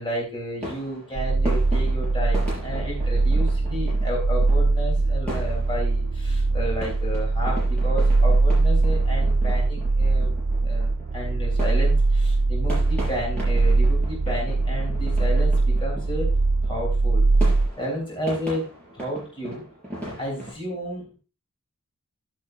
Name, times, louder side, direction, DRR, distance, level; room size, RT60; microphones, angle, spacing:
voice 1, 0.0-10.3 10.6-10.9 11.1-16.3 16.7-17.3 17.8-18.7 18.9-19.6 20.1-21.2, equal, 20° left, -2 dB, 3.4 m, -32 dB
sound 1, 0.6-20.5, equal, 5° left, 5.7 m, -38 dB
sound 2, 1.2-17.7, right 3 dB, 80° right, 0.5 m, -21 dB
10.5 x 9.0 x 2.6 m, 0.32 s
head